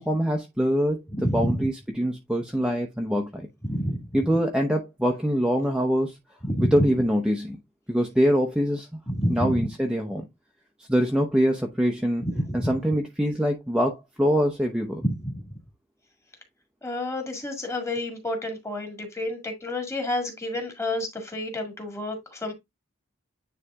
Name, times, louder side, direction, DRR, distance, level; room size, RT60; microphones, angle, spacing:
voice 1, 0.0-1.0 1.3-3.5 4.1-6.2 6.6-7.6 7.9-8.9 9.3-10.2 10.9-12.3 12.5-15.0, equal, 5° right, 0.8 m, -24 dB
voice 2, 1.1-1.6 3.6-4.0 6.4-6.7 9.1-9.6 12.2-12.3 12.6-12.7 16.8-22.5, left 1 dB, 15° left, 1.9 m, -29 dB
9.6 x 3.3 x 3.6 m
head